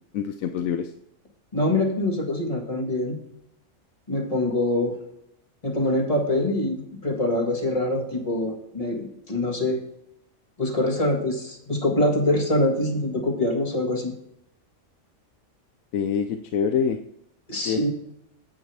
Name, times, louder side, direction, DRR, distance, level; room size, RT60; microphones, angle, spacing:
voice 1, 0.1-0.9 15.9-17.0 17.7-17.9, left 7 dB, 85° left, 9 dB, 1.1 m, -25 dB
voice 2, 1.5-3.2 4.1-5.0 5.6-9.8 10.6-14.1 17.5-17.9, left 1 dB, 25° left, 1 dB, 1.8 m, -24 dB
10.0 x 8.7 x 3.4 m, 0.79 s
omnidirectional pair, 1.4 m